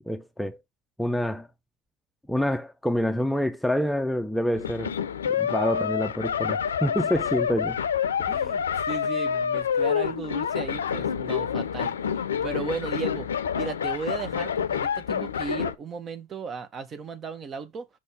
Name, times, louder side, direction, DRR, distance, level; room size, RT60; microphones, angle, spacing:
voice 1, 0.1-0.6 1.0-1.5 2.3-4.9 5.3-7.8, equal, 5° left, 0.7 m, -27 dB
sound 1, 4.5-15.7, left 7 dB, 80° left, 0.5 m, -28 dB
voice 2, 8.3-13.3 13.5-17.9, right 5 dB, 40° right, 1.4 m, -35 dB
6.1 x 4.1 x 4.9 m
figure-of-eight pair, 65°, 0 cm